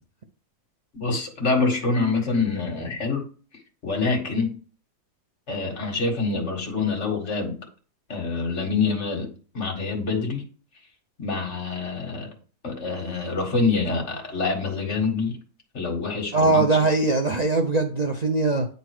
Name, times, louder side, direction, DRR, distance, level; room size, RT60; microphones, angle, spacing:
voice 1, 0.9-3.2 3.8-4.6 5.5-7.6 8.1-10.4 11.2-12.3 12.6-15.4 15.7-16.7, left 4 dB, 45° left, 1.9 m, -26 dB
voice 2, 16.3-18.7, right 3 dB, 90° right, 0.3 m, -21 dB
9.2 x 3.9 x 4.8 m
omnidirectional pair, 1.7 m